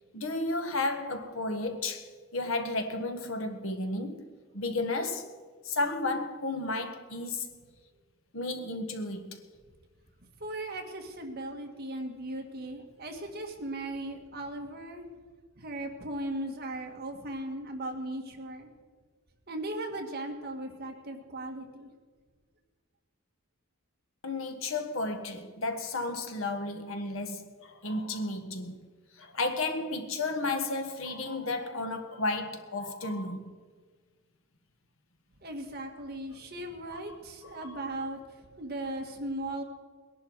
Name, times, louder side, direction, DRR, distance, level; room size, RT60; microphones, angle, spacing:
voice 1, 0.1-2.1 2.3-5.3 5.6-7.5 8.3-9.4 24.2-28.8 29.1-33.5 36.9-37.2 37.4-37.8, left 2 dB, 65° left, 1.4 m, -33 dB
voice 2, 10.4-15.0 15.6-18.7 19.5-21.9 35.4-39.6, right 1 dB, 45° right, 1.8 m, -37 dB
20.5 x 11.0 x 4.7 m
head